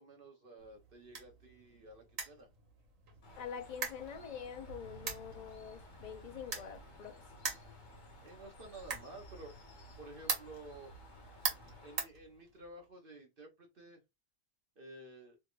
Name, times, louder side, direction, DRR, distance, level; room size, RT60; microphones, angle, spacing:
voice 1, 0.0-2.5 8.2-9.5 10.0-10.9 11.8-14.0 14.8-15.4, right 2 dB, 50° right, 0.9 m, -52 dB
sound 1, 0.6-12.9, right 5 dB, 75° right, 1.6 m, -44 dB
Bird, 3.2-12.0, left 2 dB, 40° left, 0.9 m, -57 dB
voice 2, 3.4-7.2, left 7 dB, 75° left, 0.3 m, -45 dB
3.3 x 3.2 x 2.4 m
omnidirectional pair, 1.4 m